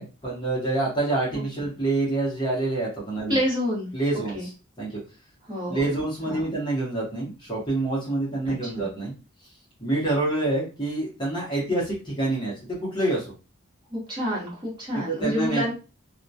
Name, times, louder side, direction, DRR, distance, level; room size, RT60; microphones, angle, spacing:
voice 1, 0.0-3.4 3.9-4.5 4.8-5.0 5.7-9.1 9.8-13.3 14.9-15.7, right 2 dB, 25° left, -5 dB, 0.8 m, -27 dB
voice 2, 3.3-3.9 4.3-4.5 5.5-5.9 6.3-6.5 8.4-8.9 13.9-15.7, equal, 20° right, -5 dB, 1.0 m, -28 dB
2.2 x 2.2 x 2.6 m, 0.32 s
head